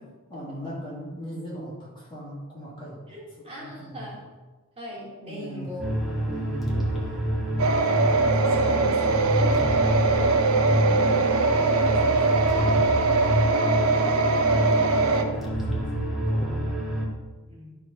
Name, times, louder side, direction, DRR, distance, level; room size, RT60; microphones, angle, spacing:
voice 1, 0.0-4.2 5.2-5.7 6.2-7.2 9.4-10.0 10.7-12.9 14.8-15.9 16.3-16.7, equal, 25° left, -6 dB, 3.1 m, -40 dB
voice 2, 3.1-4.2 4.8-5.9 7.7-9.7 14.4-14.7 17.5-17.7, equal, 30° right, -5 dB, 2.5 m, -40 dB
sound 1, 5.8-17.1, right 1 dB, ahead, 1.8 m, -27 dB
sound 2, 7.6-15.2, right 3 dB, 85° right, 0.9 m, -22 dB
12.0 x 4.4 x 5.5 m, 1.2 s
head